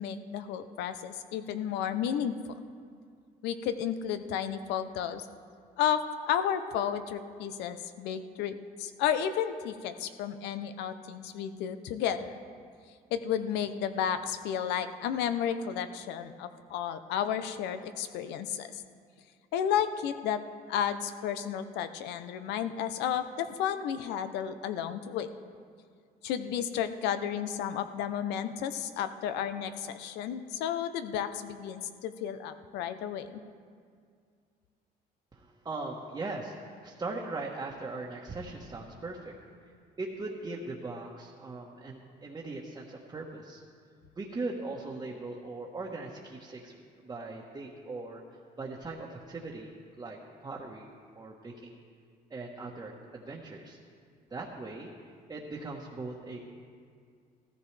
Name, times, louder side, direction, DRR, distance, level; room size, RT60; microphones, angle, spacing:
voice 1, 0.0-2.3 3.4-5.3 5.8-12.4 13.1-18.8 19.5-20.4 20.7-25.3 26.2-33.4, left 9 dB, 90° left, 10 dB, 0.7 m, -32 dB
voice 2, 35.3-39.3 40.0-43.6 44.2-46.7 47.0-48.2 48.6-50.9 51.1-51.8 52.3-53.8 54.3-54.9 55.3-56.4, right 3 dB, 25° right, -3 dB, 1.3 m, -39 dB
15.5 x 14.5 x 3.3 m, 2.1 s
cardioid pair, 110°, 17 cm